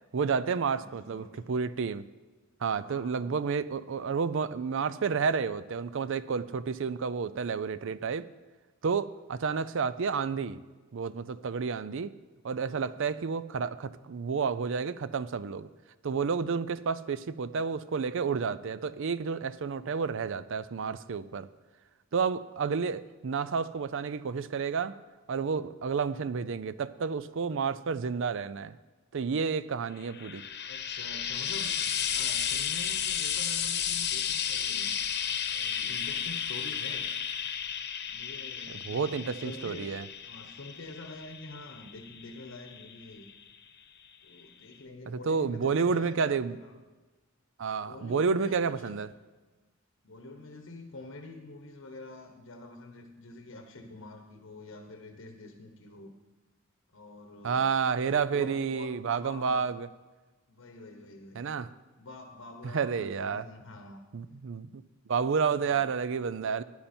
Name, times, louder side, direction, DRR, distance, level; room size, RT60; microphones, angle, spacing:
voice 1, 0.1-2.0 2.6-8.3 8.8-10.6 10.9-12.1 12.4-15.7 16.0-21.5 22.1-24.9 25.3-28.7 29.1-30.4 38.9-40.0 45.1-46.6 47.6-49.1 57.4-59.9 61.4-61.7 62.7-63.4 64.1-64.8 65.1-66.6, right 5 dB, 65° right, 16 dB, 0.5 m, -30 dB
voice 2, 0.8-1.4 2.8-3.3 12.7-13.1 30.6-35.1 35.5-37.1 38.1-40.0 40.3-43.3 44.2-46.8 47.6-49.0 50.0-56.1 56.9-57.7 58.0-59.7 60.5-61.5 62.0-64.0 65.6-65.8, left 2 dB, 80° left, 4 dB, 1.0 m, -47 dB
Frying (food), 30.0-43.4 44.4-44.5, left 8 dB, 55° left, 1.0 m, -33 dB
14.5 x 10.0 x 4.4 m, 1.3 s
head